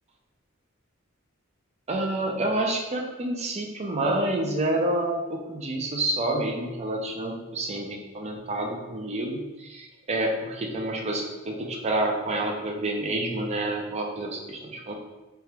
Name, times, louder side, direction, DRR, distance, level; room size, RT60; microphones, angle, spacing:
voice 1, 1.9-14.9, right 1 dB, 30° right, 1 dB, 0.5 m, -28 dB
3.4 x 2.9 x 3.3 m, 1.1 s
head